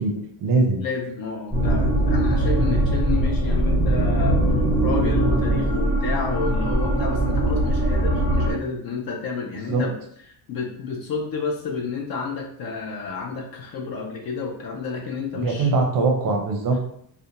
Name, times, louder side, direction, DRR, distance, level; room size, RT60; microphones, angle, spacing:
voice 1, 0.0-0.8 9.7-9.8 15.3-16.8, right 3 dB, 45° right, 3 dB, 0.5 m, -22 dB
voice 2, 0.8-4.4 4.8-10.0 10.5-15.7, left 5 dB, 50° left, 0 dB, 0.4 m, -30 dB
sound 1, 1.5-8.5, right 1 dB, 10° left, 1.1 m, -21 dB
2.4 x 2.1 x 2.8 m, 0.68 s
cardioid pair, 165°, 48 cm